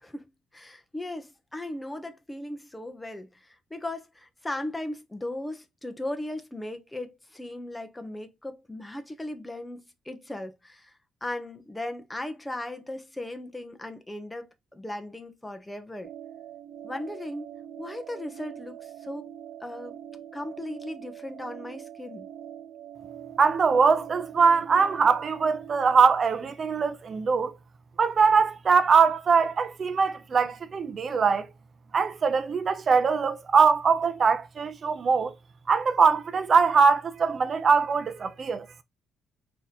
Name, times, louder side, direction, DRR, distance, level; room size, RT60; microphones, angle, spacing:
voice 1, 0.0-16.1 16.8-17.5 17.8-19.3 19.6-20.0 20.3-22.3, left 1 dB, 10° left, 0.8 m, -37 dB
sound 1, 16.0-26.1, right 10 dB, 90° right, 0.6 m, -43 dB
voice 2, 23.4-27.5 28.0-31.5 31.9-35.3 35.7-38.6, right 5 dB, 45° right, 0.6 m, -22 dB
4.1 x 2.9 x 3.6 m
cardioid pair, 90°, 0 cm